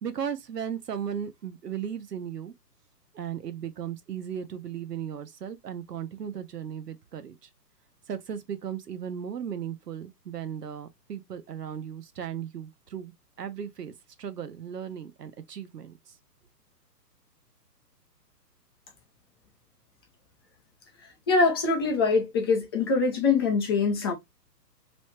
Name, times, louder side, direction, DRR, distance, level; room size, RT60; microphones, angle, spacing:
voice 1, 0.0-2.5 3.1-7.4 8.1-13.9 14.2-16.0, right 8 dB, 70° right, 0.9 m, -36 dB
voice 2, 21.3-24.1, left 4 dB, 15° left, 0.6 m, -23 dB
3.1 x 3.0 x 3.1 m
figure-of-eight pair, 135°, 49 cm